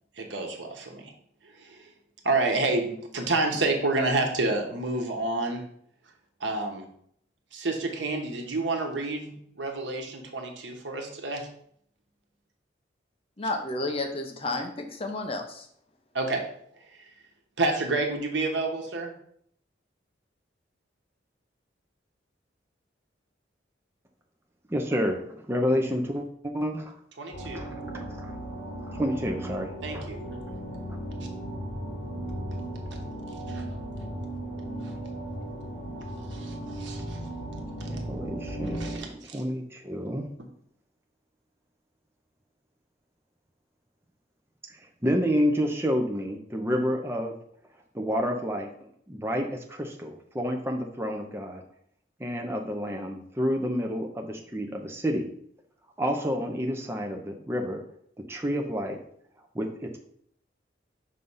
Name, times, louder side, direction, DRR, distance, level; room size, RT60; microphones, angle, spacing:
voice 1, 0.2-1.1 1.4-1.9 2.2-5.6 6.4-6.8 7.5-11.5 16.1-16.4 16.9-17.1 17.6-19.1 27.2-27.7 29.8-30.2 33.5-33.6 34.8-34.9 36.3-37.2 38.7-39.4, right 2 dB, 80° right, 2 dB, 1.1 m, -29 dB
voice 2, 13.4-15.7, left 2 dB, 30° left, 4 dB, 0.7 m, -31 dB
voice 3, 24.7-26.9 27.5-28.3 28.9-30.1 37.9-40.3 45.0-47.3 47.9-51.6 52.2-55.2 56.0-57.8 58.3-59.0 59.5-59.7, equal, 15° right, 2 dB, 0.6 m, -29 dB
sound 1, 27.3-39.0, right 1 dB, 80° left, 1.6 m, -36 dB
5.4 x 3.3 x 5.5 m, 0.66 s
head